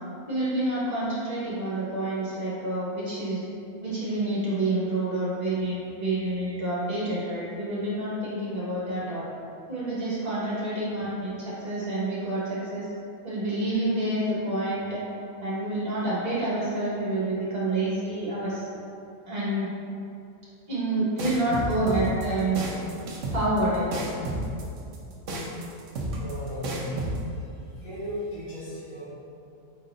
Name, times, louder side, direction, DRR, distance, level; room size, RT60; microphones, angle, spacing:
voice 1, 0.3-3.4 3.8-9.3 9.7-12.9 13.2-15.0 15.4-18.7 19.3-19.7 20.7-22.6 23.3-24.1, right 2 dB, 45° right, -9 dB, 1.7 m, -28 dB
sound 1, 21.2-27.2, right 1 dB, 65° right, 1.0 m, -31 dB
voice 2, 26.2-27.4 27.8-29.0, equal, 45° left, -13 dB, 1.7 m, -36 dB
5.1 x 4.0 x 2.6 m, 2.5 s
omnidirectional pair, 1.5 m